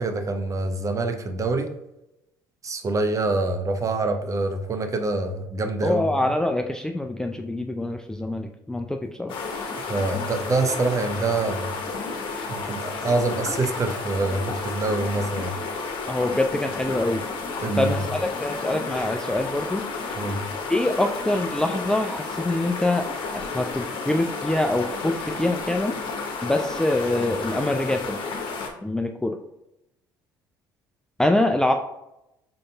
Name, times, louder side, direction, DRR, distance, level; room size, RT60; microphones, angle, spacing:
voice 1, 0.0-1.7 2.6-6.3 9.8-11.7 12.5-15.6 17.6-17.9 20.1-20.4, right 3 dB, 30° right, 6 dB, 0.7 m, -26 dB
voice 2, 5.8-9.3 16.1-17.3 17.8-20.2 20.7-23.1 23.3-26.0 26.4-28.2 28.8-29.4 31.2-31.7, left 1 dB, 5° left, 4 dB, 0.3 m, -25 dB
sound 1, 9.3-28.7, left 4 dB, 55° left, 0.9 m, -32 dB
5.1 x 3.8 x 2.2 m, 0.89 s
figure-of-eight pair, 55°, 11 cm